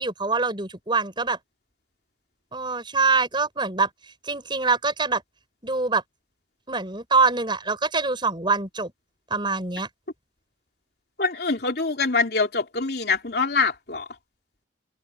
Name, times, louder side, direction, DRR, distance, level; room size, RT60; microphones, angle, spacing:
voice 1, 0.0-1.4 2.5-3.9 4.3-5.2 5.6-6.0 6.7-8.9 9.3-9.9, right 4 dB, 25° right, 6.3 m, -24 dB
voice 2, 11.2-14.0, left 4 dB, 60° left, 3.2 m, -24 dB
head